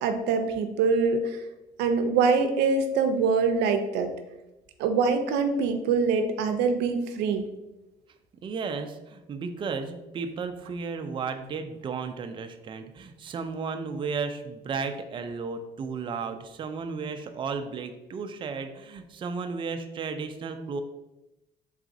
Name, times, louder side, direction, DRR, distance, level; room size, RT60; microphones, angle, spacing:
voice 1, 0.0-1.4 1.8-4.1 4.8-7.4, right 5 dB, 90° right, 7 dB, 0.5 m, -24 dB
voice 2, 8.4-20.8, right 5 dB, 30° right, 7 dB, 0.4 m, -34 dB
3.9 x 2.4 x 3.7 m, 0.97 s
cardioid pair, 110°, 17 cm